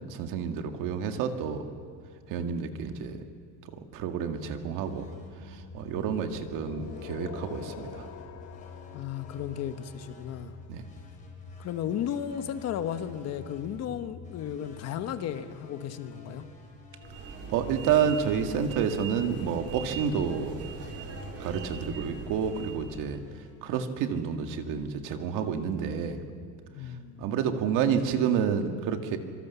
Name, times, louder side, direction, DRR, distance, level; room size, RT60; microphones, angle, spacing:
voice 1, 0.0-1.7 2.3-3.2 3.7-5.1 5.4-8.1 10.7-10.8 17.5-20.6 21.4-23.2 23.6-26.2 27.2-29.2, right 7 dB, 60° right, 6 dB, 2.1 m, -29 dB
sound 1, 4.8-24.4, left 3 dB, 20° left, 4.0 m, -49 dB
sound 2, 5.7-10.6, left 6 dB, 70° left, 2.5 m, -45 dB
voice 2, 8.9-10.5 11.6-16.5 26.8-27.3, left 9 dB, 45° left, 10 dB, 1.2 m, -34 dB
sound 3, 17.0-22.9, right 4 dB, 40° right, 3.0 m, -41 dB
25.5 x 24.0 x 7.1 m, 2.1 s
cardioid pair, 175°, 37 cm